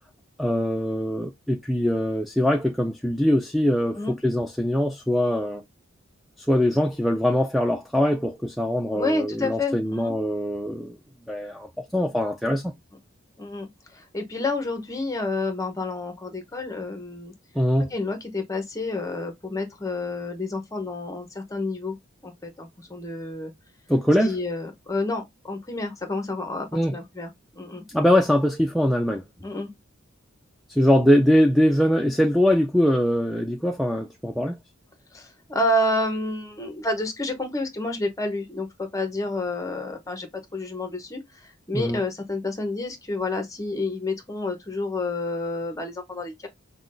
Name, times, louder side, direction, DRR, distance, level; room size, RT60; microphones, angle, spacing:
voice 1, 0.4-5.6 6.5-11.0 11.3-12.7 17.6-17.9 23.9-24.4 26.7-27.0 27.9-29.2 30.7-34.6 41.7-42.0, equal, ahead, 0.3 m, -22 dB
voice 2, 8.9-10.2 13.4-17.3 17.9-22.0 22.2-23.5 24.2-27.8 29.4-29.7 35.1-46.5, left 2 dB, 15° left, 0.8 m, -29 dB
5.7 x 2.2 x 2.5 m
head